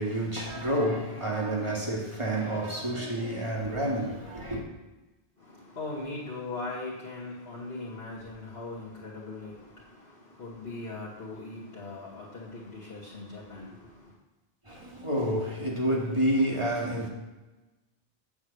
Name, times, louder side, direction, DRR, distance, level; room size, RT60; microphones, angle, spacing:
voice 1, 0.0-4.6 14.6-17.1, right 1 dB, 30° right, 2.2 m, -29 dB
voice 2, 5.4-14.1, left 2 dB, 70° left, 2.6 m, -40 dB
7.3 x 7.0 x 8.2 m
omnidirectional pair, 1.0 m